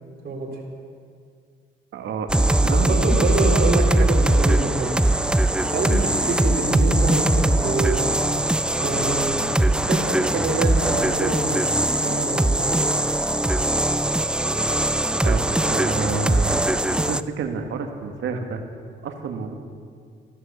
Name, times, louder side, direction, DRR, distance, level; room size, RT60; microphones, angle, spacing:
voice 1, 0.2-0.6 2.7-5.0 5.7-8.1 8.8-9.4 9.7-11.6 12.0-12.8, right 3 dB, 50° right, -2 dB, 3.9 m, -26 dB
voice 2, 1.9-3.2 15.2-16.5 17.0-18.6 19.0-19.5, right 5 dB, 70° right, 5 dB, 1.7 m, -29 dB
sound 1, 2.3-17.2, right 1 dB, 5° right, 0.4 m, -21 dB
14.5 x 12.5 x 7.0 m, 2.2 s
cardioid pair, 90°, 20 cm